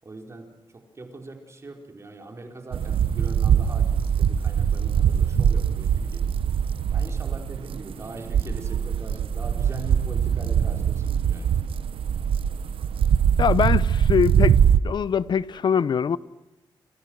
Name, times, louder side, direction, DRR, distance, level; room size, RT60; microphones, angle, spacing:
voice 1, 0.0-6.4 6.9-11.5, right 2 dB, 30° right, 4.6 m, -41 dB
sound 1, 2.7-14.8, right 8 dB, 80° right, 1.0 m, -22 dB
voice 2, 13.4-14.6 14.8-16.2, left 7 dB, 55° left, 0.8 m, -23 dB
29.0 x 27.5 x 6.4 m
wide cardioid pair, 140°, 9 cm